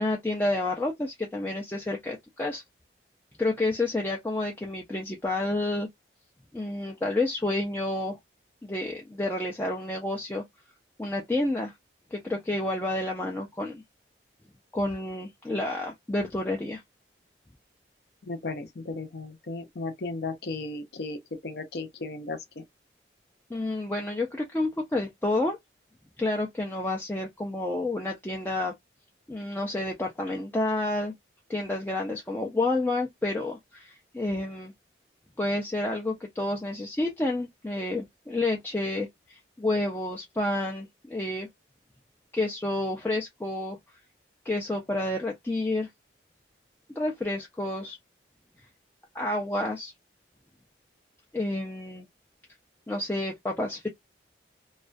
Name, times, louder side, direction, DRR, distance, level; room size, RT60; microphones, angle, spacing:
voice 1, 0.0-2.6 3.4-5.9 6.5-8.2 8.6-10.4 11.0-11.7 12.1-13.8 14.7-16.8 23.5-25.6 26.2-28.7 29.3-31.1 31.5-34.7 35.4-41.5 42.3-43.8 44.4-45.9 47.0-48.0 49.1-49.9 51.3-52.1 52.9-53.9, left 2 dB, 10° left, 0.3 m, -29 dB
voice 2, 18.2-22.6, left 3 dB, 60° left, 0.5 m, -35 dB
2.3 x 2.2 x 2.4 m
head